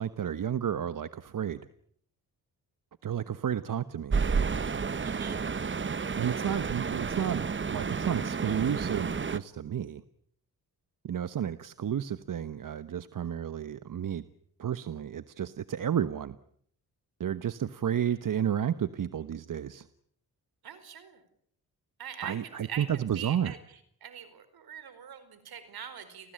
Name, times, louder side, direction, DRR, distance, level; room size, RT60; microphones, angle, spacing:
voice 1, 0.0-1.6 3.0-4.2 6.1-10.0 11.0-14.2 14.6-16.4 17.2-19.9 22.2-23.6, right 9 dB, 60° right, 13 dB, 1.2 m, -32 dB
sound 1, 4.1-9.4, right 5 dB, 30° right, 1.0 m, -31 dB
voice 2, 5.0-5.4 20.6-21.2 22.0-26.3, right 8 dB, 75° right, 12 dB, 4.8 m, -43 dB
30.0 x 19.5 x 8.9 m, 0.66 s
cardioid pair, 75°, 37 cm